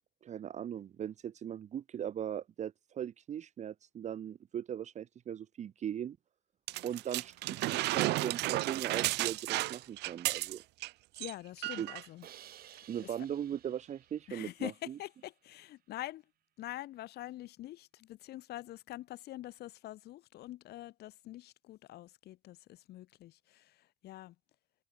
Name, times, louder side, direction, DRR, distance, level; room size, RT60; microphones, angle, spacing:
voice 1, 0.2-6.2 6.8-10.6 11.8-11.9 12.9-15.0, right 9 dB, 45° right, 0.8 m, -39 dB
sound 1, 6.7-10.9 11.2-11.3 11.6-12.1 12.8-12.9, right 19 dB, 85° right, 1.2 m, -33 dB
voice 2, 11.2-12.3 13.0-13.1 14.3-16.2 16.6-24.4, left 15 dB, 70° left, 1.6 m, -45 dB
Crash cymbal, 12.2-15.3, right 12 dB, 60° right, 3.2 m, -57 dB
cardioid pair, 110°, 17 cm